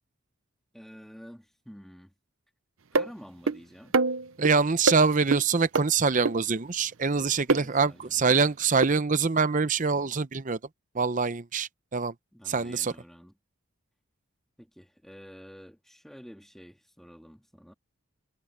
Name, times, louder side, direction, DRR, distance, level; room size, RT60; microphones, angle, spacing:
voice 1, 0.7-2.1 2.9-4.0 7.6-8.5 12.3-13.4 14.6-17.7, equal, ahead, 2.6 m, -49 dB
sound 1, 3.0-3.1 3.5-3.6 3.9-4.5 4.9-5.0 5.3-5.4 5.8-5.9 6.3-6.4 7.5-7.6 8.8-8.9, right 3 dB, 70° right, 0.7 m, -24 dB
voice 2, 4.4-10.6 10.9-12.1 12.5-12.9, right 4 dB, 35° right, 0.7 m, -25 dB
head